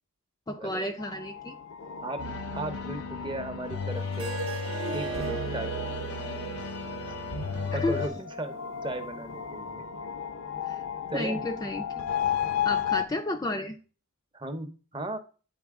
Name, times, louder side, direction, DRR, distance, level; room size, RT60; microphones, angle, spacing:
voice 1, 0.5-1.6 7.7-8.2 10.7-10.8 11.1-12.1 12.6-13.8, left 1 dB, 15° left, 6 dB, 0.3 m, -32 dB
sound 1, 1.0-6.3 7.8-13.1, left 9 dB, 65° left, 0.5 m, -34 dB
sound 2, 2.2-8.1, left 3 dB, 85° left, 1.0 m, -34 dB
voice 2, 2.5-4.4 4.9-5.7 7.0-7.1 7.7-8.5 8.8-9.8 11.1-11.4 14.3-15.2, right 2 dB, 20° right, 8 dB, 0.6 m, -36 dB
Harp, 4.1-9.3, right 4 dB, 70° right, 0.7 m, -38 dB
8.6 x 3.9 x 3.5 m, 0.37 s
head